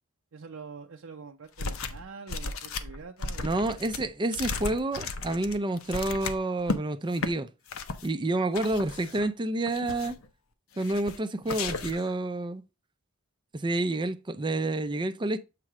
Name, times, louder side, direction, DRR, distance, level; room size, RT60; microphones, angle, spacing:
voice 1, 0.3-3.9, right 5 dB, 70° right, 0.6 m, -45 dB
sound 1, 1.6-2.0 2.3-6.8 7.1-7.3 7.7-8.1 8.5-9.3 9.7-10.3 10.8-11.2 11.5-12.1, left 3 dB, 70° left, 0.7 m, -35 dB
voice 2, 3.4-7.5 8.0-10.1 10.8-12.6 13.5-15.4, right 2 dB, 20° right, 0.5 m, -29 dB
7.5 x 3.1 x 4.7 m
head